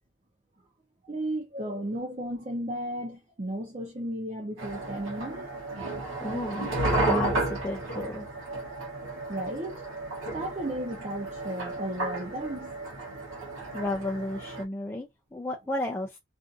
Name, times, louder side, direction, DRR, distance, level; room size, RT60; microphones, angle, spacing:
voice 1, 1.0-5.5 6.0-6.2 8.7-8.9 9.3-12.8, right 1 dB, 35° right, 0.7 m, -35 dB
sound 1, 4.6-14.6, right 2 dB, 85° right, 0.9 m, -33 dB
voice 2, 6.2-6.7 7.0-8.3 13.7-16.2, left 2 dB, 10° left, 0.3 m, -32 dB
2.6 x 2.5 x 2.5 m
head